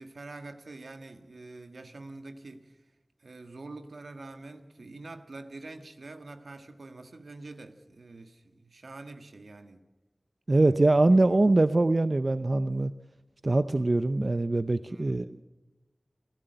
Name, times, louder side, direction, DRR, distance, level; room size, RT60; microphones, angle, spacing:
voice 1, 0.0-2.8 3.2-9.9 10.6-11.6 14.8-15.1, right 2 dB, 90° right, 1.6 m, -46 dB
voice 2, 10.5-12.9 13.4-15.4, right 2 dB, 55° right, 0.6 m, -23 dB
29.5 x 12.5 x 7.9 m
wide cardioid pair, 40°, 0 cm